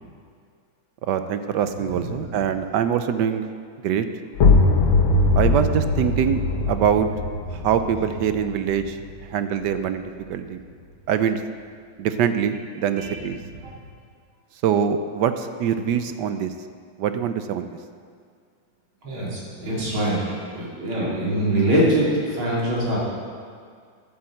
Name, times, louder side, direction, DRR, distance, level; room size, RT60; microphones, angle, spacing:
voice 1, 1.0-3.4 3.8-4.0 5.3-7.1 7.5-9.0 9.3-10.0 10.3-10.6 11.1-11.4 12.0-13.4 14.6-16.5 17.0-17.7, right 8 dB, 70° right, 9 dB, 1.1 m, -23 dB
voice 2, 1.8-2.5 13.0-13.2 13.6-13.7 19.0-23.0, right 1 dB, 90° right, -6 dB, 4.3 m, -24 dB
sound 1, 4.3-9.9, left 3 dB, 80° left, 1.9 m, -21 dB
11.5 x 8.5 x 7.7 m, 2.1 s
omnidirectional pair, 2.2 m